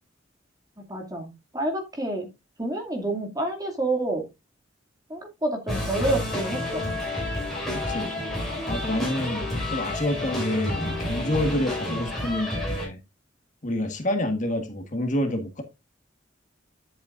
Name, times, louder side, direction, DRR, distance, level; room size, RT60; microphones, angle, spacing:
voice 1, 0.9-2.3 2.6-4.3 5.1-6.8, right 2 dB, 20° right, 2.5 m, -28 dB
sound 1, 5.7-12.9, left 1 dB, ahead, 5.1 m, -29 dB
voice 2, 7.7-8.1 8.7-13.0 13.6-15.6, left 1 dB, 40° left, 1.5 m, -28 dB
10.5 x 8.0 x 2.5 m
head